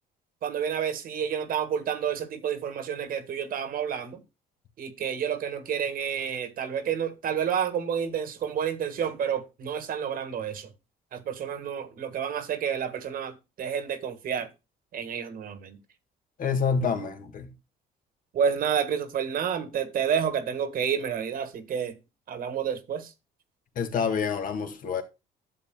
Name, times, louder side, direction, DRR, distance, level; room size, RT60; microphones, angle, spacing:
voice 1, 0.4-4.2 4.8-10.7 11.1-14.5 14.9-15.8 18.3-21.9 22.3-23.1, right 8 dB, 60° right, 1.5 m, -29 dB
voice 2, 16.4-17.5 23.8-25.0, left 6 dB, 55° left, 2.0 m, -27 dB
11.5 x 7.6 x 2.2 m
cardioid pair, 110°, 17 cm